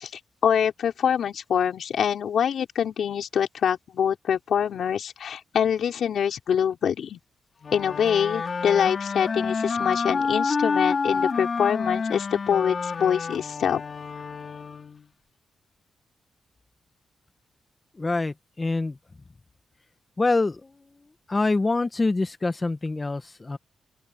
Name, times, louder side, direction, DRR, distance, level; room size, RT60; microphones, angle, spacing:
voice 1, 0.0-7.2 7.7-13.8, left 8 dB, 75° left, 5.4 m, -25 dB
sound 1, 7.6-15.1, left 5 dB, 45° left, 3.5 m, -28 dB
voice 2, 18.0-19.0 20.2-20.6 21.3-23.6, left 3 dB, 25° left, 1.6 m, -25 dB
open air
cardioid pair, 95°, 0 cm